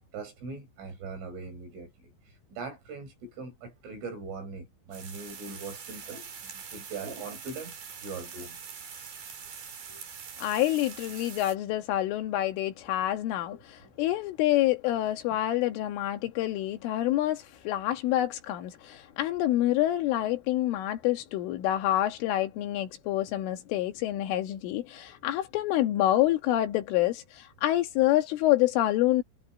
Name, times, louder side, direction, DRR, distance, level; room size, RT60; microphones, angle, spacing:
voice 1, 0.1-2.1 2.5-7.8 8.0-8.6 9.9-10.0 13.5-13.6, right 4 dB, 85° right, 9.5 m, -41 dB
sound 1, 4.9-11.5, right 6 dB, 50° right, 5.0 m, -44 dB
voice 2, 10.4-29.2, left 14 dB, 90° left, 4.4 m, -27 dB
omnidirectional pair, 5.5 m